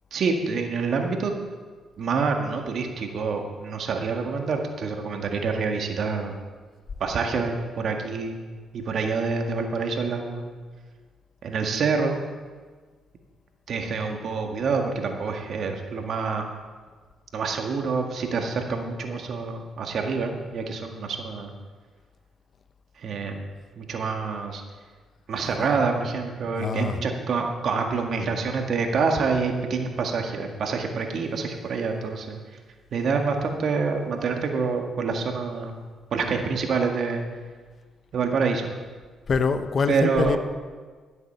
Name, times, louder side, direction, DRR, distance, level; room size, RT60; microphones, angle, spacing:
voice 1, 0.1-1.3 2.0-6.3 7.0-8.4 8.7-10.5 11.4-12.2 13.7-16.5 17.3-21.5 23.0-23.5 23.7-24.6 25.3-32.4 32.9-35.7 36.1-37.3 38.1-38.7 39.9-40.4, right 4 dB, 65° right, 3 dB, 1.8 m, -27 dB
voice 2, 26.4-27.0 39.3-40.4, left 5 dB, 50° left, 10 dB, 0.9 m, -25 dB
12.5 x 8.1 x 6.8 m, 1.5 s
cardioid pair, 70°, 0 cm